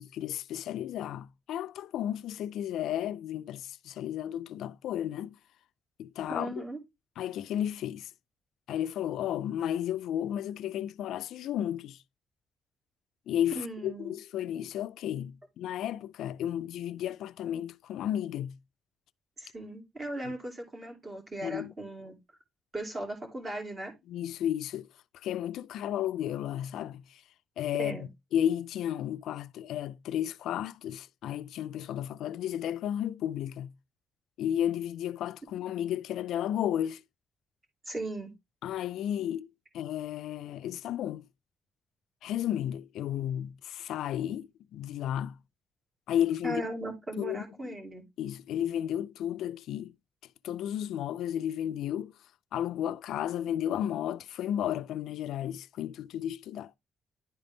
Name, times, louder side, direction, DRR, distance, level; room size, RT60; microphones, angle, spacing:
voice 1, 0.0-5.4 6.0-6.6 7.2-8.1 8.7-12.0 13.3-18.6 20.2-20.4 21.4-21.7 24.1-24.9 25.1-27.2 27.6-28.0 28.3-33.7 34.4-37.0 38.6-39.5 39.7-41.2 42.2-45.4 46.1-46.7 47.2-47.8 48.2-50.0 50.4-52.1 52.5-56.7, left 10 dB, 90° left, 0.4 m, -33 dB
voice 2, 6.3-6.8 13.5-14.1 19.4-22.2 22.7-23.9 27.8-28.1 37.9-38.3 46.4-48.0, right 1 dB, 25° right, 2.3 m, -37 dB
11.0 x 3.9 x 3.5 m
cardioid pair, 145°, 0 cm